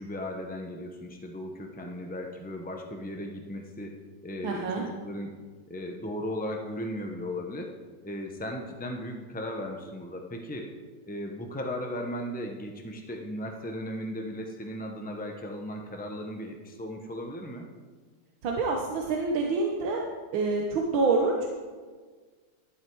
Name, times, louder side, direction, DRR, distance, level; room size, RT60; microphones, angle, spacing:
voice 1, 0.0-4.0 4.2-5.4 5.7-7.7 8.0-10.7 11.1-17.7, left 1 dB, 15° left, 2 dB, 0.3 m, -36 dB
voice 2, 4.4-4.8 18.4-20.1 20.3-21.5, right 3 dB, 90° right, 0 dB, 1.8 m, -27 dB
12.5 x 11.0 x 4.6 m, 1.5 s
omnidirectional pair, 2.1 m